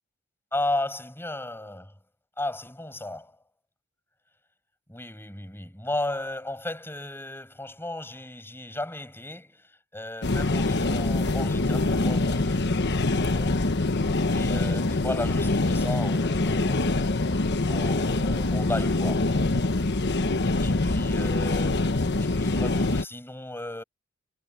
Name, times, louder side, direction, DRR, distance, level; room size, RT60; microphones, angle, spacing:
voice 1, 0.5-1.9 2.4-3.4 4.9-13.7 14.2-17.1 17.7-19.3 20.6-23.8, left 1 dB, 10° left, 7.4 m, -35 dB
sound 1, 10.2-23.0, left 2 dB, 55° left, 1.2 m, -24 dB
head